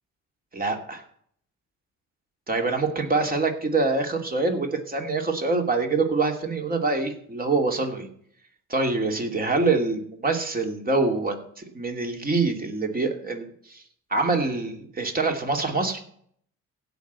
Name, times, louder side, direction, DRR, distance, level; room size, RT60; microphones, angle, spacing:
voice 1, 0.5-1.0 2.5-8.1 8.7-13.8 14.1-16.0, right 3 dB, 30° right, 3 dB, 2.7 m, -25 dB
16.0 x 6.0 x 8.1 m, 0.64 s
cardioid pair, 90°, 30 cm